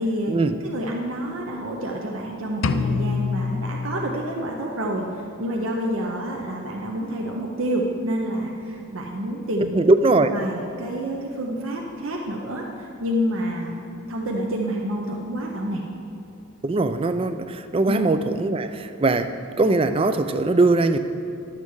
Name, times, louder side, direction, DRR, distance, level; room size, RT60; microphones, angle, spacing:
voice 1, 0.0-0.3 0.6-9.8 10.3-13.8 14.1-15.8 17.9-18.0, equal, 70° right, -1 dB, 0.8 m, -28 dB
sound 1, 2.6-4.6, left 5 dB, 65° left, 0.4 m, -26 dB
voice 2, 9.7-10.3 16.6-21.0, right 2 dB, 25° right, 10 dB, 0.3 m, -21 dB
11.0 x 7.5 x 4.7 m, 2.8 s
head